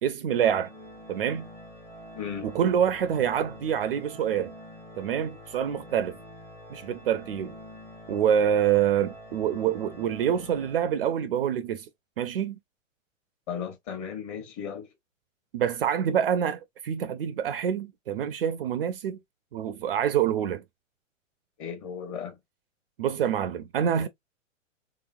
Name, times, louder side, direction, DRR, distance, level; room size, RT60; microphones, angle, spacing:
voice 1, 0.0-0.7 1.1-1.5 2.4-4.5 5.0-6.2 6.7-7.5 8.1-11.9 12.2-12.6 15.5-19.2 19.5-20.6 23.0-24.1, right 9 dB, 50° right, 0.4 m, -26 dB
Organ, 0.6-11.4, left 1 dB, 10° left, 0.6 m, -46 dB
voice 2, 2.1-2.5 13.5-14.9 21.6-22.4, left 7 dB, 30° left, 1.1 m, -35 dB
3.4 x 3.0 x 2.4 m
figure-of-eight pair, 105°, 39 cm